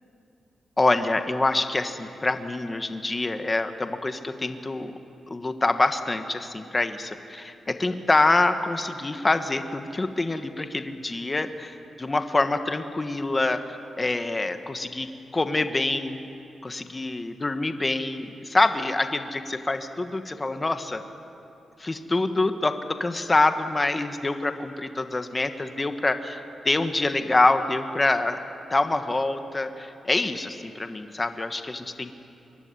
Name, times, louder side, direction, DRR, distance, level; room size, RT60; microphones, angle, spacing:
voice 1, 0.8-4.9 5.3-13.6 14.0-16.3 16.6-21.0 21.8-26.4 26.6-28.4 28.7-32.1, left 2 dB, 20° left, 8 dB, 1.4 m, -25 dB
25.0 x 22.0 x 9.8 m, 2.7 s
wide cardioid pair, 120°, 0 cm